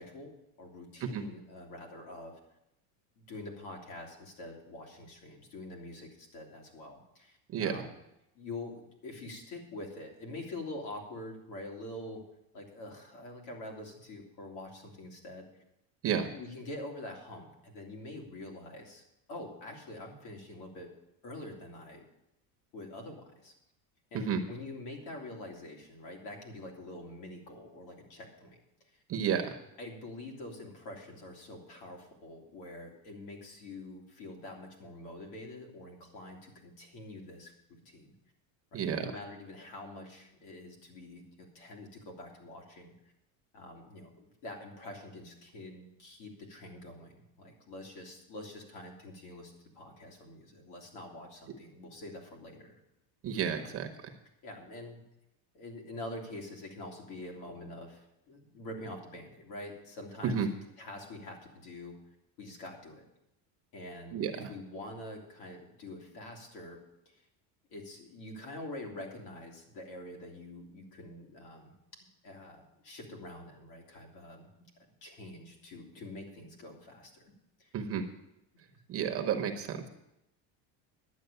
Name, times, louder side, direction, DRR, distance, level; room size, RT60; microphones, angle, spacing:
voice 1, 0.0-2.3 3.2-7.9 8.3-12.2 12.5-15.6 16.3-19.0 19.3-20.9 21.2-22.0 22.7-23.5 24.1-29.0 29.8-38.1 38.7-42.9 43.5-52.8 53.5-53.8 54.4-55.0 55.5-62.0 62.4-63.0 63.7-66.8 67.0-67.2 67.7-71.7 72.2-74.5 75.0-77.3 77.6-77.7 78.6-78.8, left 1 dB, 65° left, 0 dB, 3.2 m, -46 dB
voice 2, 29.1-29.5 38.7-39.0 53.2-53.9 60.2-60.5 64.1-64.3 77.7-78.1 78.9-79.9, right 7 dB, 35° right, 4 dB, 1.0 m, -31 dB
10.5 x 8.8 x 6.8 m, 0.87 s
cardioid pair, 155°, 42 cm